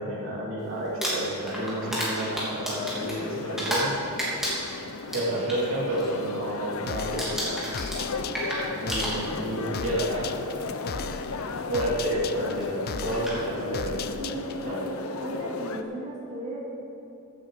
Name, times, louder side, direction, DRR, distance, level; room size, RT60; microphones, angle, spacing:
voice 1, 0.0-4.0 5.1-7.3 8.7-10.3 11.7-14.0 14.6-14.8, right 1 dB, 65° right, -5 dB, 3.2 m, -30 dB
Crumpling crinkling, 0.8-3.9 4.2-5.6 6.0-6.3 6.6-6.9 7.2-9.6 10.5-10.6 12.6-12.7 13.1-13.4, equal, ahead, 3.1 m, -31 dB
sound 1, 1.0-15.8, left 3 dB, 80° left, 0.7 m, -36 dB
sound 2, 6.9-14.7, left 5 dB, 45° left, 0.5 m, -38 dB
voice 2, 14.2-16.6, right 1 dB, 35° right, -6 dB, 2.4 m, -35 dB
15.5 x 9.0 x 5.2 m, 2.7 s
head